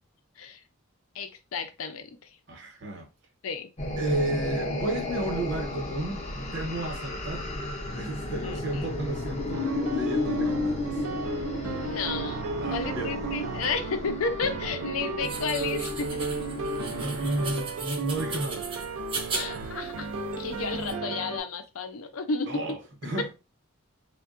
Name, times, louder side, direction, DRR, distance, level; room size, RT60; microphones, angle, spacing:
voice 1, 1.1-2.4 3.4-3.7 8.4-8.9 11.8-16.3 19.3-22.6, left 4 dB, 80° left, 0.5 m, -33 dB
voice 2, 2.5-3.1 4.0-11.0 12.6-13.2 16.7-18.7 22.5-23.3, right 1 dB, 55° right, 0.9 m, -33 dB
sound 1, 3.8-17.6, left 2 dB, 30° left, 0.5 m, -33 dB
sound 2, 9.5-21.4, right 4 dB, 85° right, 0.4 m, -34 dB
sound 3, 15.2-20.9, right 4 dB, 25° right, 0.6 m, -38 dB
3.5 x 2.2 x 2.5 m
head